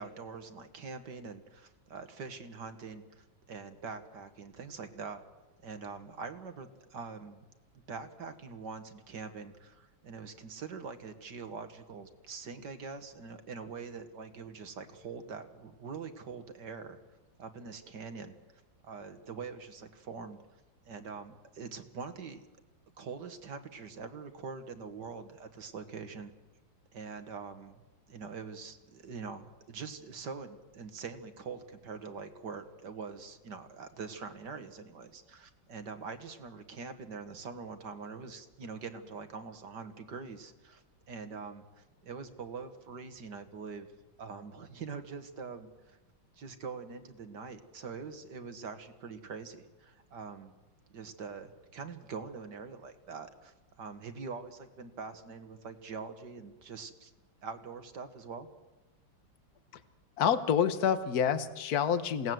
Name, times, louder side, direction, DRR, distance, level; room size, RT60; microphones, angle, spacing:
voice 1, 0.0-5.2 5.6-7.4 7.9-17.0 17.4-18.4 18.8-20.4 20.9-22.4 23.0-26.3 26.9-27.8 28.1-43.9 44.2-46.0 46.4-50.5 50.9-57.1 57.4-58.5, right 5 dB, 60° right, 8 dB, 2.1 m, -44 dB
voice 2, 60.2-62.3, left 8 dB, 55° left, 11 dB, 1.6 m, -27 dB
27.5 x 18.0 x 7.8 m, 1.2 s
omnidirectional pair, 2.2 m